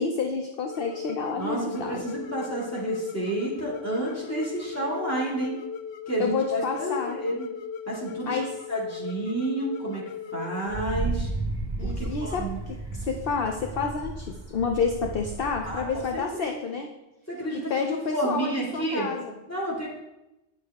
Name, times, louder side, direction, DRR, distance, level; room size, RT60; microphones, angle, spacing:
voice 1, 0.0-2.1 6.2-7.2 8.3-8.5 11.8-16.9 17.7-19.3, left 5 dB, 55° left, 3 dB, 0.8 m, -29 dB
sound 1, 0.7-10.9, left 7 dB, 85° left, 0.9 m, -38 dB
voice 2, 1.4-5.6 6.1-7.5 7.9-8.4 8.7-10.0 10.3-11.3 11.8-12.6 15.6-16.6 17.3-19.1 19.5-19.9, right 1 dB, 10° left, -5 dB, 2.3 m, -30 dB
Wind, 10.7-16.2, right 3 dB, 15° right, 1.2 m, -33 dB
9.6 x 6.4 x 3.6 m, 0.96 s
omnidirectional pair, 1.2 m